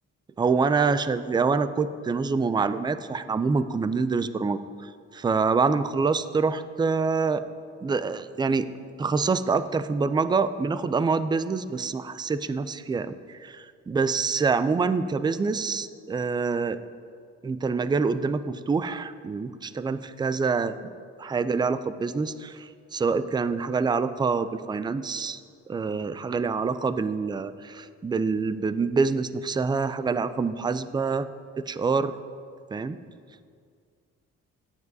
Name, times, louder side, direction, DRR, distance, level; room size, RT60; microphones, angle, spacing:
voice 1, 0.4-7.4 7.8-8.7 9.0-16.8 17.4-20.8 21.2-25.4 25.7-31.3 31.6-32.2 32.7-33.0, right 4 dB, 15° right, 13 dB, 0.4 m, -26 dB
17.0 x 9.7 x 2.7 m, 2.2 s
cardioid pair, 90°, 30 cm